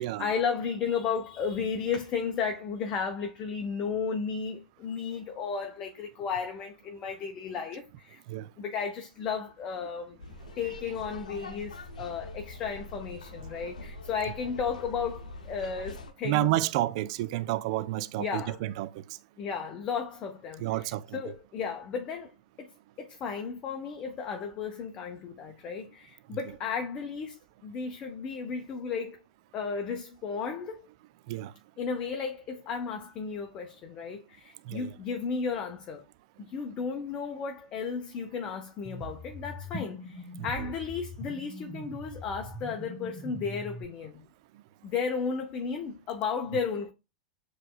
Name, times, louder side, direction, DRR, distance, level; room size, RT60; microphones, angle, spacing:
voice 1, 0.0-8.2 8.6-10.2 10.6-16.5 18.2-18.6 19.4-22.3 22.6-22.7 23.0-29.2 29.5-30.9 31.8-36.0 36.4-44.2 44.8-46.9, left 6 dB, 35° left, 0.7 m, -34 dB
sound 1, 10.2-16.1, left 2 dB, 75° left, 0.8 m, -44 dB
voice 2, 16.2-19.2 20.6-21.2 31.3-31.5 34.7-34.9 40.4-40.5, right 15 dB, 50° right, 0.3 m, -30 dB
sound 2, 38.8-43.8, equal, 15° left, 1.3 m, -41 dB
7.4 x 3.1 x 2.3 m
figure-of-eight pair, 95°, 4 cm